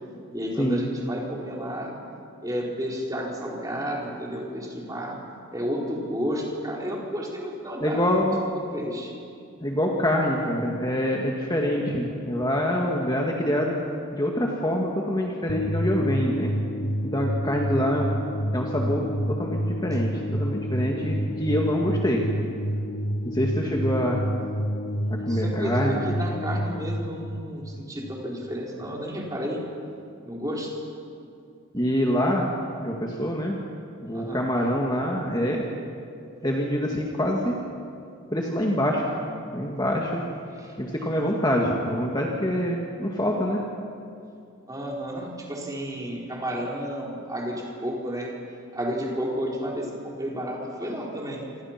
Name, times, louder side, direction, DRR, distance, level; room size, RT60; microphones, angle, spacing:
voice 1, 0.3-1.9 2.4-5.2 5.5-8.1 8.5-9.1 25.3-29.6 30.2-30.7 34.1-34.4 40.6-40.7 44.7-48.3 48.7-51.4, equal, 15° right, -3 dB, 4.3 m, -31 dB
voice 2, 7.8-8.4 9.6-13.7 14.1-16.5 17.1-18.1 18.5-22.2 23.2-24.2 25.1-26.0 31.7-32.5 32.8-33.6 34.0-35.7 36.4-37.5 38.3-39.2 39.5-40.2 40.8-43.6, equal, 20° left, -1 dB, 2.0 m, -25 dB
sound 1, 15.5-28.6, equal, 75° left, 2.9 m, -29 dB
27.0 x 26.5 x 6.0 m, 2.4 s
head